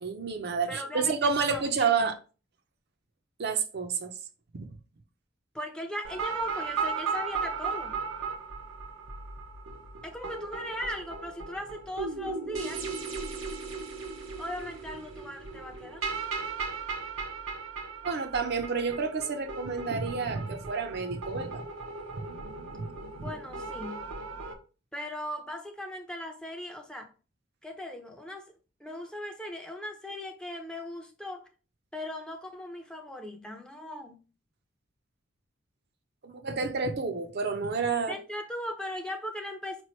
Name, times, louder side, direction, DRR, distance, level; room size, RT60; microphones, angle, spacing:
voice 1, 0.0-2.2 3.4-4.1 4.5-4.7 18.0-21.6 22.8-22.9 36.2-38.2, right 5 dB, 55° right, 0.6 m, -29 dB
voice 2, 0.7-1.7 2.0-2.1 5.5-8.0 10.0-12.8 14.4-16.1 23.1-24.1 24.9-27.1 27.6-28.5 28.8-31.4 31.9-34.2 38.1-39.8, left 1 dB, 5° left, 0.5 m, -38 dB
sound 1, 6.0-24.5, right 5 dB, 85° right, 0.8 m, -37 dB
4.9 x 3.1 x 3.0 m
head